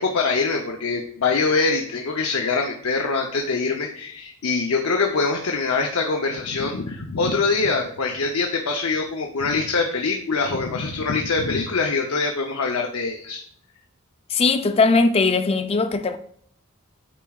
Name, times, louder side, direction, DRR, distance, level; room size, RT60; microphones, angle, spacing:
voice 1, 0.0-13.4, left 4 dB, 85° left, 0.7 m, -24 dB
voice 2, 14.3-16.2, left 3 dB, 30° left, 0.4 m, -19 dB
8.9 x 4.7 x 2.3 m
head